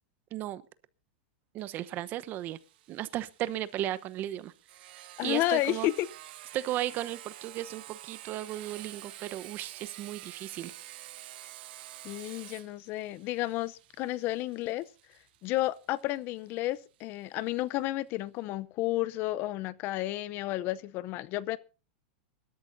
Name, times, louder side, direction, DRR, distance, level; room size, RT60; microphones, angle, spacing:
voice 1, 0.3-0.6 1.5-2.6 2.9-4.5 4.9-5.9 6.5-10.7, right 13 dB, 35° right, 0.9 m, -35 dB
Sawing, 1.6-17.0, right 14 dB, 65° right, 1.8 m, -49 dB
voice 2, 5.2-6.1 12.0-14.9 15.4-21.6, left 16 dB, 35° left, 0.7 m, -31 dB
24.5 x 13.0 x 2.7 m
supercardioid pair, 145°, 6 cm